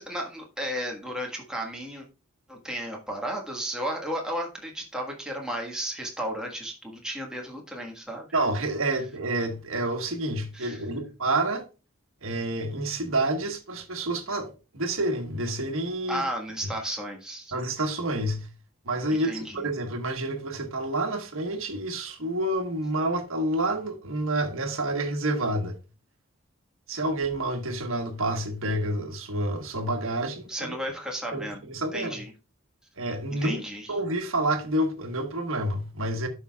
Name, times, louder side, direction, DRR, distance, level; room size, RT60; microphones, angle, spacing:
voice 1, 0.0-2.0 2.5-8.3 10.5-10.9 16.1-17.5 19.1-19.7 30.5-31.7 31.9-32.3 33.3-34.0, equal, 5° right, 1.5 m, -34 dB
voice 2, 8.3-11.6 12.2-16.2 17.5-18.5 18.8-25.8 26.9-30.8 31.3-32.2 33.0-33.6 33.9-36.3, right 1 dB, 70° right, 1.4 m, -28 dB
12.5 x 5.7 x 2.3 m
head